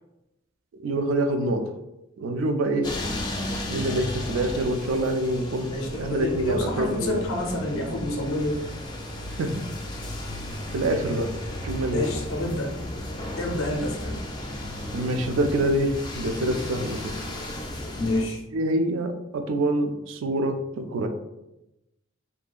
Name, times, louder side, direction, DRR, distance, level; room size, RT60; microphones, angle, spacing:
voice 1, 0.8-1.6 2.2-2.9 3.7-7.2 9.4-9.6 10.7-11.3 11.6-12.1 14.9-17.1 18.5-21.1, right 1 dB, 70° right, 6 dB, 0.3 m, -26 dB
sound 1, 2.8-18.2, left 1 dB, 20° left, 0.3 m, -34 dB
voice 2, 5.6-8.6 11.9-12.7 13.4-14.2 18.0-18.4, left 1 dB, 85° left, 1 dB, 0.5 m, -28 dB
2.7 x 2.2 x 2.3 m, 0.90 s
head